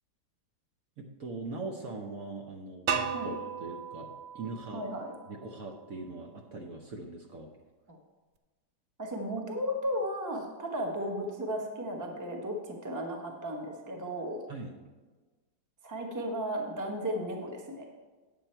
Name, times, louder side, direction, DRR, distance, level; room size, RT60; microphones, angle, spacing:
voice 1, 1.0-4.9 5.3-7.5 14.5-14.8, right 3 dB, 60° right, 2 dB, 1.1 m, -41 dB
sound 1, 2.9-5.8, right 6 dB, 85° right, 1.4 m, -36 dB
voice 2, 4.7-5.1 7.9-8.0 9.0-14.4 15.8-17.8, equal, 15° right, 1 dB, 0.8 m, -35 dB
9.2 x 7.5 x 4.4 m, 1.3 s
omnidirectional pair, 1.9 m